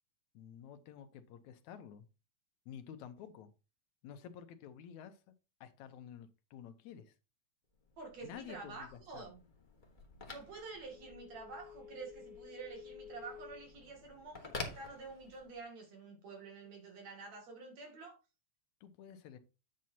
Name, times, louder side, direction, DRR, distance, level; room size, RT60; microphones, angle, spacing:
voice 1, 0.3-2.1 2.7-3.5 4.0-5.2 5.6-7.1 8.2-9.3 18.8-19.4, left 8 dB, 80° left, 2.2 m, -51 dB
Telephone, 7.8-15.7, left 4 dB, 50° left, 0.5 m, -50 dB
voice 2, 8.0-9.4 10.3-18.2, right 4 dB, 65° right, 3.6 m, -49 dB
9.1 x 7.5 x 2.8 m
omnidirectional pair, 3.3 m